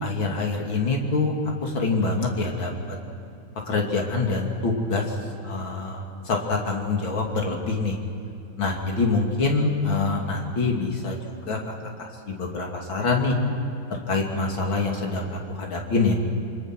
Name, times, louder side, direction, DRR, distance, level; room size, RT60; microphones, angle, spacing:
voice 1, 0.0-1.3 1.6-2.7 3.7-5.2 5.4-8.0 8.6-11.6 12.0-13.4 13.9-16.1, left 3 dB, 75° left, 0 dB, 3.5 m, -25 dB
27.0 x 25.0 x 6.2 m, 2.7 s
omnidirectional pair, 2.2 m